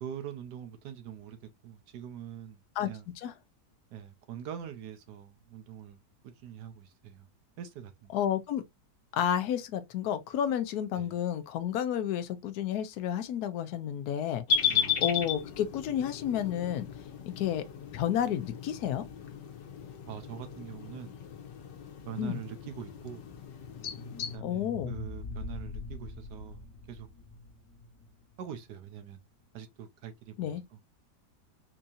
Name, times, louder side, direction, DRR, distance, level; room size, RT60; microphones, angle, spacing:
voice 1, 0.0-3.1 3.9-6.0 6.2-7.3 7.6-8.1 10.9-11.1 14.7-15.0 20.1-21.2 22.1-23.3 24.3-27.1 28.4-29.2 29.5-30.6, right 9 dB, 75° right, 1.3 m, -44 dB
voice 2, 8.1-8.6 9.1-16.9 17.4-17.6 17.9-19.0 22.2-22.4 24.4-25.0 30.4-30.6, left 10 dB, 70° left, 1.1 m, -31 dB
sound 1, 14.5-24.4, left 7 dB, 85° left, 1.5 m, -35 dB
sound 2, 23.5-28.6, left 2 dB, 50° left, 1.6 m, -43 dB
4.5 x 2.8 x 2.5 m
omnidirectional pair, 1.9 m